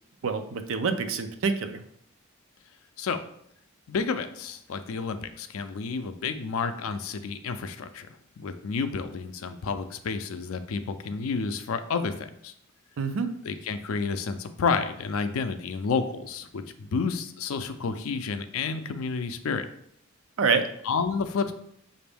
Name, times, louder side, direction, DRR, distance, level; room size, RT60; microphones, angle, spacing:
voice 1, 0.2-1.8 13.0-13.3 20.4-20.7, right 5 dB, 65° right, 9 dB, 0.4 m, -26 dB
voice 2, 3.9-8.1 8.4-12.5 13.4-19.7 20.8-21.5, left 5 dB, 75° left, 9 dB, 0.4 m, -30 dB
5.9 x 2.6 x 3.4 m, 0.69 s
head